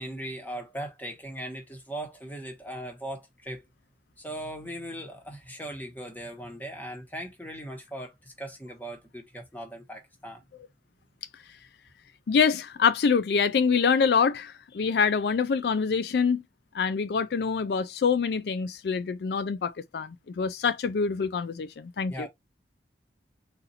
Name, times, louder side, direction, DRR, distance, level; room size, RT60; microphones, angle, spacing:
voice 1, 0.0-3.6 4.2-10.4 22.1-22.3, right 1 dB, 10° left, 1.2 m, -39 dB
voice 2, 12.3-16.4 16.7-22.3, left 5 dB, 65° left, 0.4 m, -25 dB
4.1 x 2.6 x 4.1 m
head